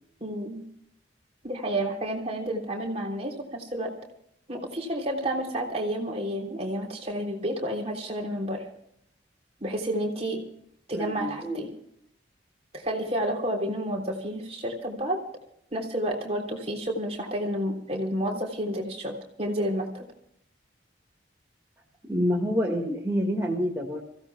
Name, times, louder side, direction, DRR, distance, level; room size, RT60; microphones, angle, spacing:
voice 1, 0.2-0.6 1.4-3.9 4.5-8.7 9.6-10.4 10.9-11.7 12.7-15.2 15.7-20.0, right 1 dB, 35° right, 0 dB, 3.3 m, -30 dB
voice 2, 10.9-11.6 22.1-24.0, equal, 15° right, -3 dB, 2.0 m, -27 dB
28.5 x 16.5 x 2.3 m, 0.74 s
head